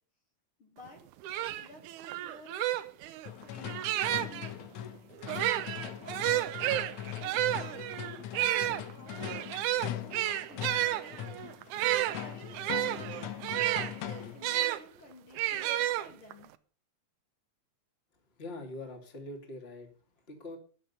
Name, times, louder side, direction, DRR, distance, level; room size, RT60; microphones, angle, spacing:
voice 1, 0.6-1.0 1.6-1.9 2.2-2.8 3.4-5.0 5.8-6.6 7.2-11.5 12.2-16.5, left 2 dB, 45° left, 2 dB, 2.5 m, -53 dB
sound 1, 0.9-1.0 1.2-4.5 5.2-14.8 15.4-16.5, right 14 dB, 80° right, 2.2 m, -31 dB
sound 2, 3.3-14.5, left 12 dB, 75° left, 2.1 m, -41 dB
voice 2, 18.4-19.9 20.3-20.6, left 2 dB, 20° left, 4 dB, 2.4 m, -43 dB
13.0 x 11.0 x 5.5 m, 0.40 s
omnidirectional pair, 3.5 m